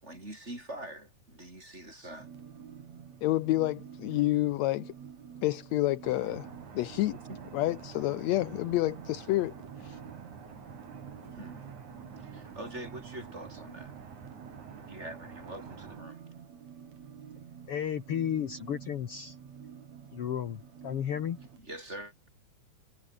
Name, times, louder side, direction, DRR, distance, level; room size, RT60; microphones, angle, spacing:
voice 1, 0.0-2.3 7.3-7.4 11.3-11.6 12.2-13.9 14.7-16.2 21.6-22.3, right 1 dB, 20° right, 7.2 m, -44 dB
sound 1, 2.2-21.6, right 8 dB, 65° right, 3.5 m, -49 dB
voice 2, 3.2-4.9 5.4-6.5 6.7-7.2 7.5-9.5 9.8-10.0, left 17 dB, 80° left, 1.8 m, -29 dB
sound 2, 6.0-16.0, right 6 dB, 85° right, 5.2 m, -48 dB
voice 3, 17.7-19.4 20.1-21.4, left 9 dB, 55° left, 2.1 m, -33 dB
omnidirectional pair, 3.4 m